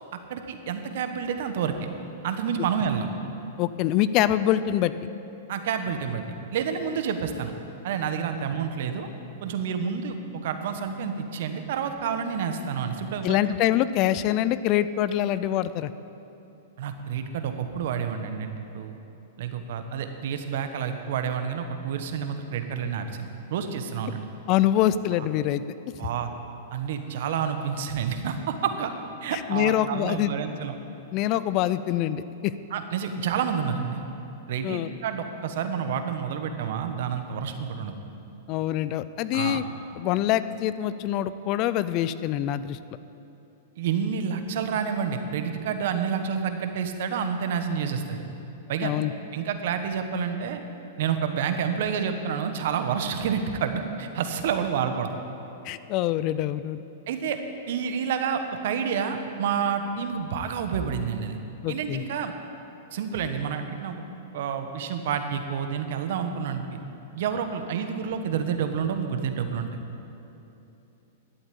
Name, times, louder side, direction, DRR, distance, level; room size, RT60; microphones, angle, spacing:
voice 1, 0.3-1.7 2.2-3.1 5.5-6.2 6.5-7.5 7.8-9.1 9.4-10.2 10.4-13.5 16.8-19.0 19.4-24.2 26.0-26.3 26.7-28.9 29.2-30.8 32.7-34.0 34.5-37.9 39.3-39.6 43.8-48.2 48.7-48.9 49.3-50.6 51.0-55.2 57.1-57.4 57.7-61.4 61.7-62.3 62.9-64.0 64.3-66.8 67.1-69.7, right 7 dB, 65° right, 7 dB, 1.2 m, -29 dB
voice 2, 3.6-4.9 13.2-15.9 24.5-25.6 29.3-30.3 31.1-32.5 34.6-34.9 38.5-39.6 40.0-42.8 48.8-49.1 55.6-56.8 61.6-62.0, left 12 dB, 45° left, 15 dB, 0.4 m, -25 dB
12.0 x 8.0 x 8.6 m, 2.9 s
hypercardioid pair, 125°, 0 cm